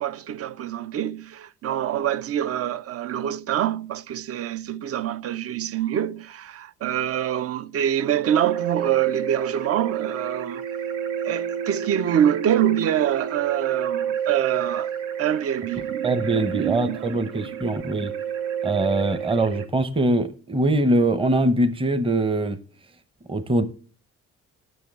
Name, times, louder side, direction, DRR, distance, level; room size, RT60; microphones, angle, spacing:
voice 1, 0.0-10.6 11.2-14.9 15.2-17.6, right 10 dB, 50° right, 0.5 m, -25 dB
sound 1, 8.2-19.7, right 8 dB, 85° right, 0.9 m, -30 dB
voice 2, 16.0-18.1 18.6-22.6 23.3-23.7, right 2 dB, 20° right, 0.8 m, -22 dB
12.0 x 6.0 x 3.5 m
cardioid pair, 90°, 30 cm